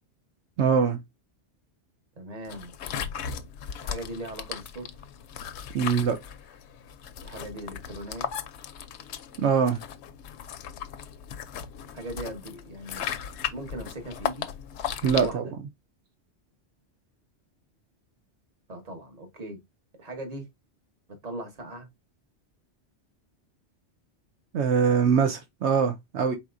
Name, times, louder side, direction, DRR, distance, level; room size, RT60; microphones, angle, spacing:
voice 1, 0.6-1.0 5.7-6.2 9.4-9.8 15.0-15.4 24.5-26.3, right 6 dB, 75° right, 0.9 m, -23 dB
voice 2, 2.1-2.7 3.8-4.9 7.2-8.3 11.9-13.1 13.5-14.5 15.1-15.5 18.7-19.6 20.0-20.5 21.1-21.9, right 1 dB, 35° right, 1.1 m, -39 dB
sound 1, 2.5-15.3, left 8 dB, 75° left, 0.8 m, -37 dB
4.2 x 4.2 x 2.5 m
omnidirectional pair, 1.2 m